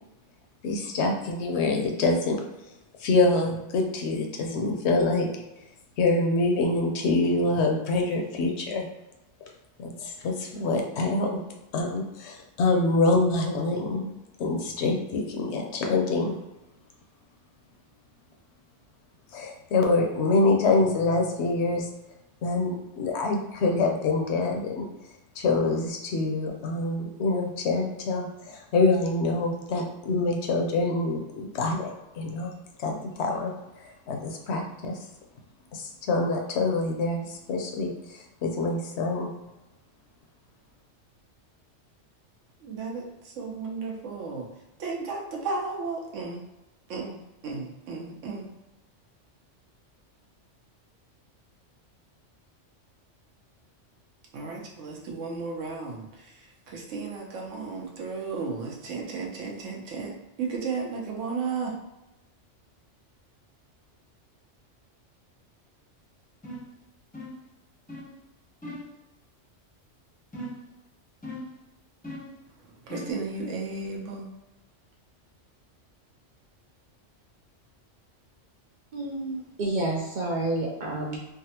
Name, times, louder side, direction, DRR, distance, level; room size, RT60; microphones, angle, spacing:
voice 1, 0.6-2.4 3.0-5.3 6.0-8.9 9.8-11.4 11.7-16.4 19.3-21.9 22.4-24.9 25.4-32.5 32.8-35.0 35.7-39.3, left 3 dB, 70° left, 2 dB, 0.8 m, -26 dB
voice 2, 42.6-44.5 44.8-46.4 46.9-47.2 47.4-48.5 54.3-56.1 56.7-60.1 60.4-61.7 72.9-74.3, right 4 dB, 80° right, -1 dB, 1.1 m, -34 dB
sound 1, 66.4-66.7 67.1-67.5 67.9-68.1 68.6-68.9 70.3-70.7 71.2-71.6 72.0-72.4 72.9-73.2, equal, 10° left, 0.5 m, -39 dB
voice 3, 78.9-81.2, right 2 dB, 60° right, -3 dB, 0.5 m, -29 dB
3.6 x 2.1 x 2.8 m, 0.98 s
omnidirectional pair, 1.3 m